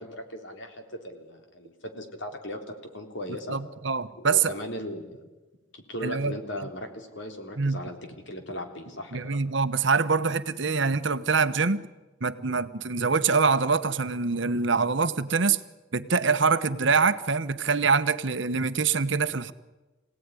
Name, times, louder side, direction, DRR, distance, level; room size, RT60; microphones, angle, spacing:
voice 1, 0.0-3.6 4.2-5.3 5.7-8.0 8.3-9.4, equal, 60° left, 4 dB, 3.6 m, -37 dB
voice 2, 3.5-4.5 6.0-6.4 7.6-7.8 9.1-11.9 12.2-15.6 15.9-19.5, right 5 dB, 60° right, 11 dB, 1.0 m, -24 dB
26.5 x 17.5 x 9.8 m, 1.2 s
head